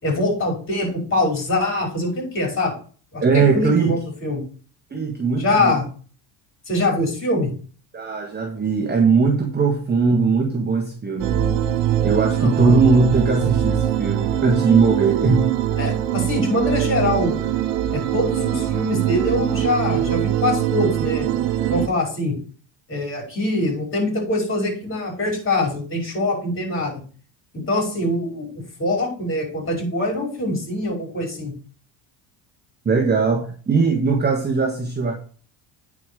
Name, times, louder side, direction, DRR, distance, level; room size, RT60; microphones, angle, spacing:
voice 1, 0.0-2.7 3.1-4.4 5.4-5.8 6.7-7.5 12.4-12.8 15.8-17.3 17.9-21.3 21.7-22.4 22.9-27.0 27.5-31.5, left 2 dB, 25° left, 1 dB, 5.4 m, -23 dB
voice 2, 3.2-3.9 4.9-5.8 7.9-11.4 12.0-15.5 32.8-35.1, right 4 dB, 20° right, 3 dB, 1.4 m, -19 dB
sound 1, 11.2-21.9, right 11 dB, 85° right, 1.1 m, -22 dB
9.7 x 5.0 x 4.9 m, 0.40 s
cardioid pair, 110°, 45 cm